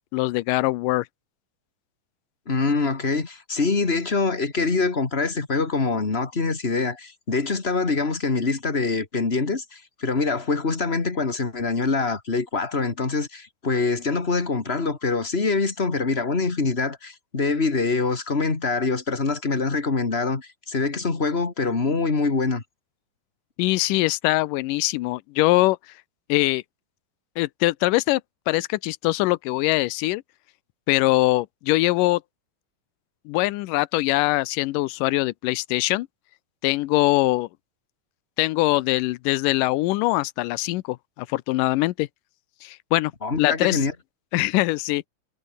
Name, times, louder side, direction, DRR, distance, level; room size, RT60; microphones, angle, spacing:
voice 1, 0.1-1.1 23.6-25.8 26.3-26.6 27.4-28.2 28.5-30.2 30.9-32.2 33.3-36.1 36.6-37.5 38.4-42.1 42.6-43.1 43.4-43.8 44.3-45.1, left 19 dB, 80° left, 2.2 m, -22 dB
voice 2, 2.4-22.6 43.2-43.9, left 4 dB, 20° left, 1.8 m, -24 dB
omnidirectional pair, 4.1 m